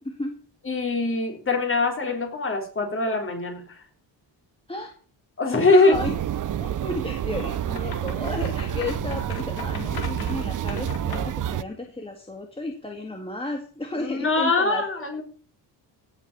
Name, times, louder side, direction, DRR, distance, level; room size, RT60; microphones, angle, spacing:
voice 1, 0.7-3.8 5.4-6.0 14.0-15.2, left 3 dB, 30° left, 3 dB, 3.7 m, -22 dB
voice 2, 5.7-6.2 6.6-15.1, left 1 dB, 10° left, 2 dB, 1.9 m, -33 dB
sound 1, 5.9-11.6, right 11 dB, 45° right, 0.6 m, -29 dB
sound 2, 7.3-11.4, left 6 dB, 55° left, 2.7 m, -39 dB
17.0 x 6.4 x 6.8 m, 0.41 s
wide cardioid pair, 145°, 44 cm